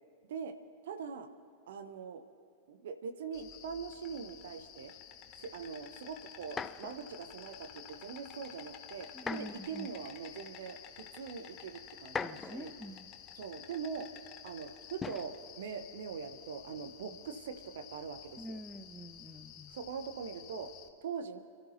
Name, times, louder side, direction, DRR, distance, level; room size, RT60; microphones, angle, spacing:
voice 1, 0.8-1.3 1.7-2.2 2.7-4.9 5.4-12.7 13.4-14.1 14.4-18.6 19.7-20.7 21.0-21.4, right 6 dB, 60° right, 9 dB, 1.0 m, -42 dB
Insect, 3.3-20.9, left 9 dB, 40° left, 1.1 m, -52 dB
sound 1, 6.4-7.0 9.1-9.7 10.7-10.8 12.0-12.7 15.0-15.4 16.6-17.0, left 5 dB, 20° left, 0.4 m, -40 dB
voice 2, 9.1-9.9 12.2-13.1 18.4-19.8, equal, ahead, 9 dB, 0.8 m, -45 dB
29.5 x 13.5 x 2.8 m, 2.1 s
figure-of-eight pair, 90°, 0 cm